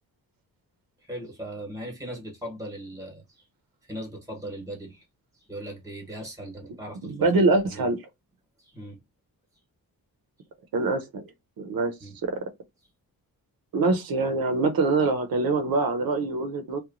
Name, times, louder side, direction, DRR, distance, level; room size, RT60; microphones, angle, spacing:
voice 1, 1.0-3.4 3.8-5.0 5.3-7.1 7.7-7.9 8.6-9.0 12.0-12.2, right 1 dB, 10° right, 0.9 m, -39 dB
voice 2, 7.0-8.0 10.7-11.3 11.6-12.4 13.7-16.8, right 3 dB, 70° right, 0.6 m, -24 dB
2.9 x 2.2 x 2.4 m
wide cardioid pair, 155°, 36 cm